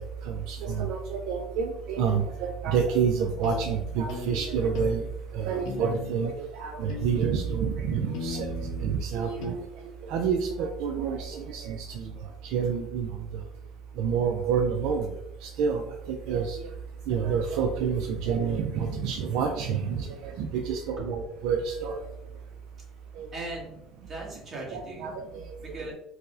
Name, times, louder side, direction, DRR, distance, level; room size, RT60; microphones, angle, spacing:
voice 1, 0.0-5.1 5.3-8.5 8.8-9.7 10.0-12.1 12.4-13.1 14.0-15.1 15.4-16.6 17.1-22.0 23.2-23.3 24.7-25.5, right 6 dB, 70° right, 4 dB, 0.3 m, -28 dB
sound 1, 3.4-3.6 4.1-4.3 4.7-5.0 5.6-6.3 6.9-7.6 8.1-8.9 9.4-9.5, left 3 dB, 70° left, 0.6 m, -37 dB
voice 2, 20.7-21.1 23.3-23.7 23.9-25.1 25.6-25.9, right 2 dB, 35° right, -4 dB, 1.4 m, -39 dB
4.5 x 2.1 x 2.5 m, 0.81 s
cardioid pair, 130°, 0 cm